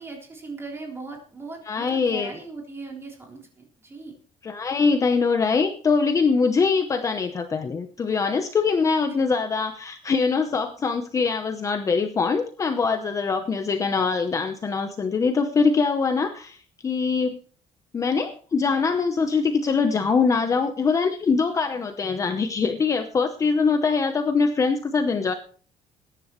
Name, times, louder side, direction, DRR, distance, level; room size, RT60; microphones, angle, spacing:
voice 1, 0.0-4.1 9.3-9.4, right 3 dB, 20° right, 0 dB, 3.7 m, -39 dB
voice 2, 1.7-2.3 4.4-16.6 16.8-17.4 17.9-25.3, left 5 dB, 25° left, 7 dB, 0.8 m, -23 dB
21.0 x 10.5 x 3.1 m, 0.43 s
cardioid pair, 170°, 14 cm